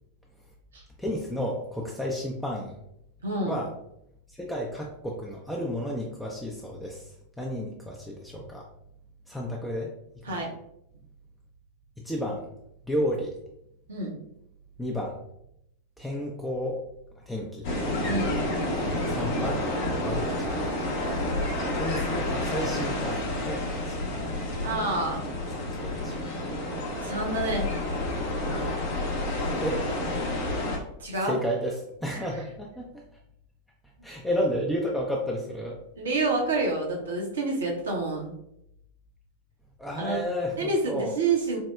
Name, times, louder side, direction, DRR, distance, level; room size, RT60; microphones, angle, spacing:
voice 1, 1.0-2.7 3.5-3.7 4.3-7.0 7.4-8.7 9.3-9.9 10.3-10.4 12.0-12.4 12.9-13.4 14.8-15.2 16.0-16.8 17.3-17.7 19.1-19.7 20.0-20.5 21.8-24.2 25.5-26.3 29.6-29.8 31.2-33.0 34.0-35.8 39.8-41.1, equal, 5° left, -2 dB, 0.4 m, -32 dB
voice 2, 3.2-3.6 10.3-10.5 13.9-14.1 18.1-18.4 24.6-25.2 27.0-27.7 31.0-31.4 32.1-32.3 36.0-38.3 39.9-40.2 40.6-41.6, right 3 dB, 65° right, -1 dB, 0.7 m, -28 dB
sound 1, 17.6-30.8, left 1 dB, 50° left, 0.7 m, -29 dB
4.4 x 2.0 x 2.3 m, 0.79 s
figure-of-eight pair, 90°, 0 cm